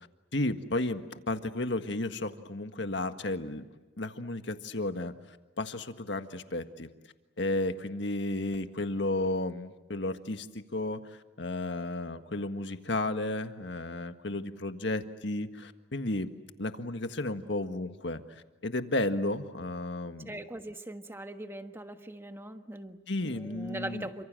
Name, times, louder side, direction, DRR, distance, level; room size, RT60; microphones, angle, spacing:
voice 1, 0.3-3.6 4.0-5.1 5.6-6.9 7.4-16.3 16.6-20.3 23.1-24.1, left 2 dB, 65° left, 8 dB, 1.7 m, -33 dB
voice 2, 20.2-24.2, right 1 dB, 10° right, 7 dB, 1.4 m, -41 dB
29.5 x 26.0 x 7.7 m, 1.2 s
head